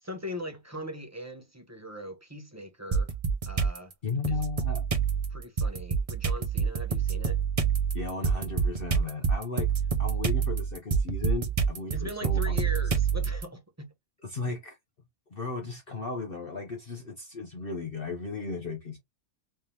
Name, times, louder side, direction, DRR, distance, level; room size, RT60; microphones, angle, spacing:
voice 1, 0.0-3.1 3.4-3.9 4.3-4.4 5.3-7.4 11.9-13.9, left 1 dB, 15° right, 0.8 m, -40 dB
sound 1, 2.9-3.8 4.2-13.4, right 6 dB, 40° right, 0.5 m, -27 dB
voice 2, 4.0-4.8 7.9-9.7 10.0-12.7 14.2-14.8 15.3-19.0, left 4 dB, 45° left, 0.9 m, -35 dB
3.4 x 3.3 x 2.8 m
omnidirectional pair, 1.5 m